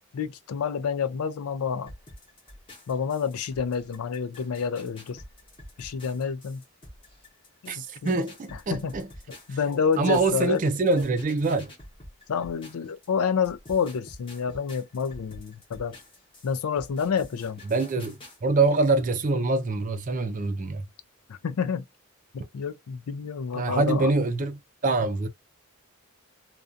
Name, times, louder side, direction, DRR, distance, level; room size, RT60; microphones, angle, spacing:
voice 1, 0.1-1.9 2.9-5.2 5.8-6.6 7.6-8.2 8.7-8.9 9.5-10.6 12.3-16.0 16.4-17.6 21.3-21.9 22.3-24.1, left 6 dB, 80° left, 0.4 m, -28 dB
sound 1, 1.9-13.1 13.4-18.4, left 1 dB, 25° left, 0.8 m, -48 dB
voice 2, 7.7-9.1 10.0-11.7 17.7-20.9 23.5-25.3, right 3 dB, 35° right, 0.4 m, -25 dB
2.4 x 2.2 x 2.5 m
head